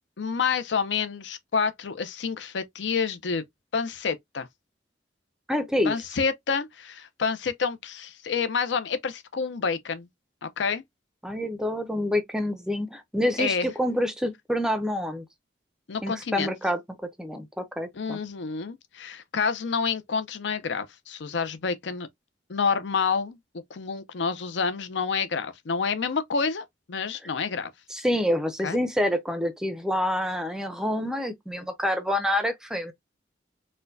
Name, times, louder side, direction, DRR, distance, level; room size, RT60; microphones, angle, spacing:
voice 1, 0.2-3.4 3.7-4.5 5.9-10.1 10.4-10.8 13.4-13.7 15.9-16.6 17.9-22.1 22.5-27.7 28.6-28.8, left 5 dB, 75° left, 0.5 m, -28 dB
voice 2, 5.5-5.9 11.2-15.2 16.0-18.2 27.9-32.9, left 1 dB, 5° right, 0.5 m, -27 dB
4.2 x 2.2 x 2.5 m
head